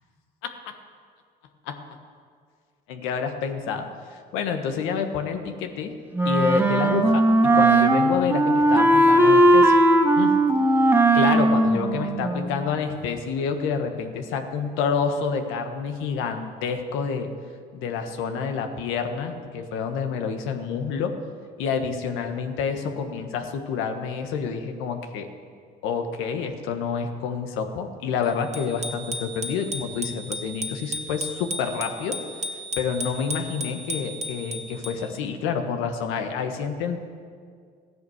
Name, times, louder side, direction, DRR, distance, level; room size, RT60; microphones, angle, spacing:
voice 1, 0.4-0.7 1.6-1.8 2.9-5.9 6.2-9.8 10.2-10.3 11.1-17.3 17.7-21.2 21.6-25.3 25.8-32.2 32.8-37.0, left 6 dB, 85° left, 6 dB, 1.5 m, -28 dB
Wind instrument woodwind instrument, 6.1-12.8, right 1 dB, 10° right, 1.7 m, -18 dB
Bicycle bell, 28.5-35.2, equal, 35° right, 1.5 m, -34 dB
14.5 x 10.5 x 8.0 m, 2.1 s
supercardioid pair, 70°, 20 cm